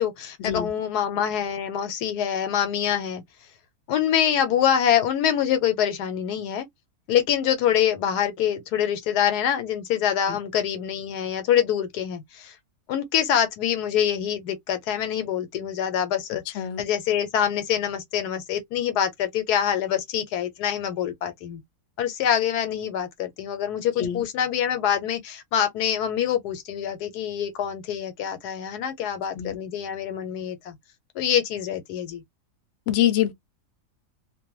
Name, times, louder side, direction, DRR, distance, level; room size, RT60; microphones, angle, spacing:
voice 1, 0.0-3.2 3.9-6.7 7.1-12.5 12.9-21.6 22.0-30.7 31.2-32.2, left 9 dB, 80° left, 1.2 m, -25 dB
voice 2, 32.9-33.3, left 11 dB, 60° left, 0.8 m, -24 dB
2.5 x 2.2 x 2.9 m
omnidirectional pair, 1.7 m